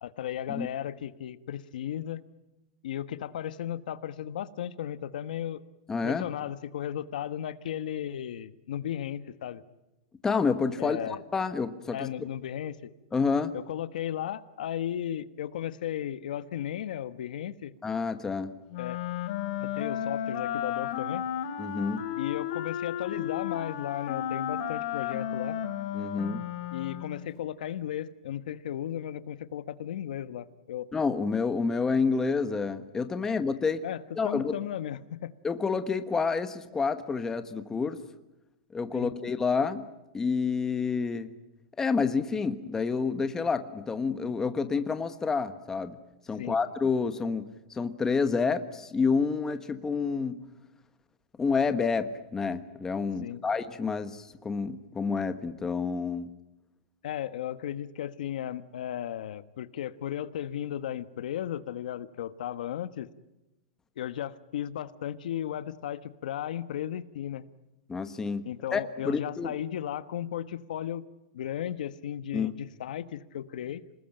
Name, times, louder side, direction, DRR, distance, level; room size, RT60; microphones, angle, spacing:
voice 1, 0.0-2.2 2.8-5.6 6.0-9.6 10.8-11.2 11.9-12.9 13.5-17.7 18.8-19.0 19.6-21.3 22.2-25.6 26.7-30.9 33.2-33.3 33.8-35.3 38.9-39.1 46.4-46.6 53.2-53.4 57.0-63.1 64.0-67.4 68.4-71.0 71.3-73.8, left 10 dB, 75° left, 13 dB, 1.3 m, -35 dB
voice 2, 5.9-6.3 10.2-11.0 11.3-12.3 13.1-13.5 17.8-18.5 21.6-22.0 25.9-26.4 30.9-33.8 34.2-34.5 35.4-38.0 38.7-39.8 40.1-41.3 41.8-46.0 46.3-50.4 51.4-56.3 67.9-69.5 72.3-72.5, left 5 dB, 10° left, 9 dB, 1.2 m, -29 dB
Wind instrument woodwind instrument, 18.7-27.2, left 10 dB, 50° left, 3.0 m, -33 dB
28.0 x 20.0 x 9.0 m, 0.98 s
supercardioid pair, 155°, 5 cm